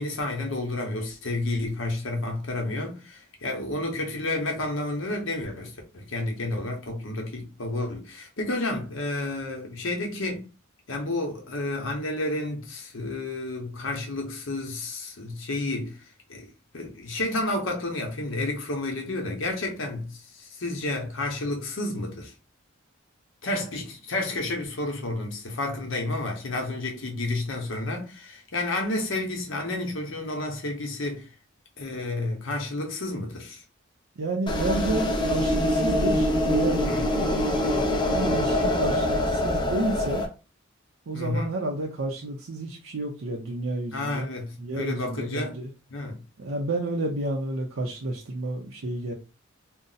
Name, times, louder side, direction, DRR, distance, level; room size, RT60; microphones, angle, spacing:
voice 1, 0.0-10.4 10.9-16.0 16.3-16.5 16.7-22.3 23.4-31.3 31.8-33.6 36.8-37.1 41.1-41.5 43.9-45.5 45.9-46.2, left 2 dB, 65° left, 0.8 m, -31 dB
voice 2, 34.2-40.2 41.1-44.3 44.6-45.7 46.4-49.1, right 2 dB, 75° right, 0.5 m, -31 dB
sound 1, 34.5-40.3, left 1 dB, 20° left, 0.4 m, -24 dB
2.6 x 2.0 x 3.9 m
head